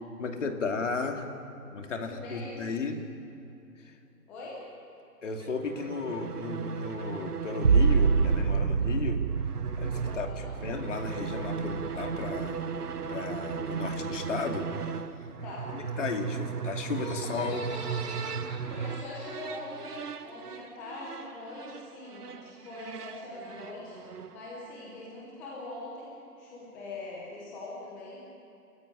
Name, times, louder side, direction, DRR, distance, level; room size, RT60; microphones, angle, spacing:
voice 1, 0.2-1.3 1.7-3.0 3.8-4.0 5.2-9.2 9.8-12.7 13.1-14.7 15.7-17.7, left 4 dB, 45° left, 4 dB, 2.8 m, -34 dB
voice 2, 2.0-2.7 4.3-4.6 10.0-10.5 15.4-15.7 18.7-28.2, left 2 dB, 5° left, -5 dB, 0.8 m, -42 dB
sound 1, 5.4-24.5, right 6 dB, 65° right, 1.3 m, -37 dB
sound 2, 7.6-13.1 13.5-14.1, right 5 dB, 40° right, 0.7 m, -27 dB
Laughter, 16.9-19.7, left 2 dB, 25° left, 5.4 m, -45 dB
29.5 x 14.0 x 9.9 m, 2.8 s
figure-of-eight pair, 150°, 49 cm